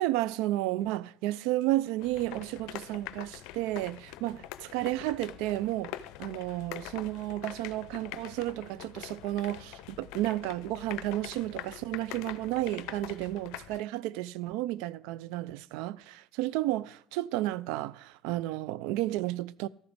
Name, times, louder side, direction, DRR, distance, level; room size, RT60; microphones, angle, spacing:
voice 1, 0.0-18.0 18.2-19.7, right 16 dB, 75° right, 0.4 m, -32 dB
sound 1, 2.0-13.8, left 13 dB, 70° left, 0.5 m, -44 dB
13.5 x 11.5 x 3.5 m
hypercardioid pair, 65°, 0 cm